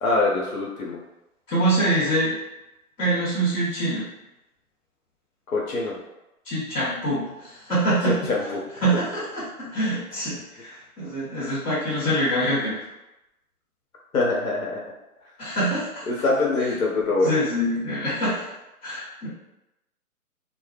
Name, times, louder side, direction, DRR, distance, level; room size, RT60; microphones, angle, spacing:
voice 1, 0.0-1.0 5.5-6.0 8.0-8.6 14.1-14.8 16.1-17.3, left 3 dB, 65° left, -3 dB, 0.7 m, -24 dB
voice 2, 1.5-2.3 3.0-4.0 6.5-7.2 7.7-8.3 8.8-9.4 9.7-12.8 15.4-16.0 17.2-18.4 18.8-19.3, right 1 dB, 15° left, -12 dB, 1.0 m, -24 dB
2.1 x 2.0 x 3.1 m, 0.94 s
hypercardioid pair, 150°, 46 cm